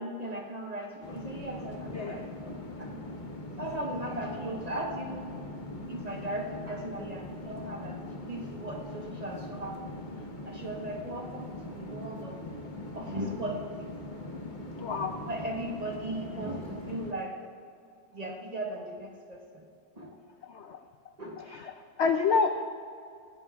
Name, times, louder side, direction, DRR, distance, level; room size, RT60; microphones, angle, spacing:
voice 1, 0.0-3.1 3.6-5.3 5.8-9.9 10.4-12.4 12.9-13.9 15.2-17.4 18.1-19.7 20.0-20.2 21.2-21.5, right 1 dB, 25° right, 0 dB, 1.1 m, -38 dB
sound 1, 1.0-17.1, left 2 dB, 30° left, 1.1 m, -41 dB
voice 2, 14.7-15.2 20.4-20.8 21.5-21.7 22.0-22.6, left 5 dB, 75° left, 7 dB, 0.6 m, -28 dB
19.5 x 17.0 x 2.4 m, 2.4 s
omnidirectional pair, 1.9 m